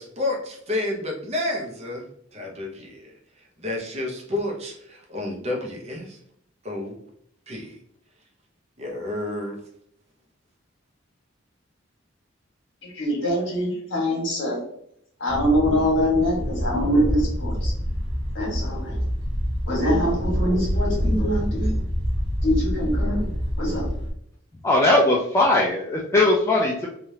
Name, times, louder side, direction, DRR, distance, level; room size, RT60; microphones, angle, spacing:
voice 1, 0.0-3.1 3.6-6.2 6.6-7.0 7.5-7.7 8.8-9.6, left 2 dB, 35° right, 1 dB, 0.7 m, -30 dB
voice 2, 12.8-14.6 15.2-17.7 18.3-19.0 19.7-21.8 22.4-24.0, equal, 70° left, -2 dB, 1.4 m, -24 dB
sound 1, 15.3-24.1, equal, 80° right, 1.2 m, -26 dB
voice 3, 24.6-26.9, left 2 dB, 15° left, -3 dB, 0.3 m, -19 dB
3.2 x 2.4 x 2.7 m, 0.69 s
head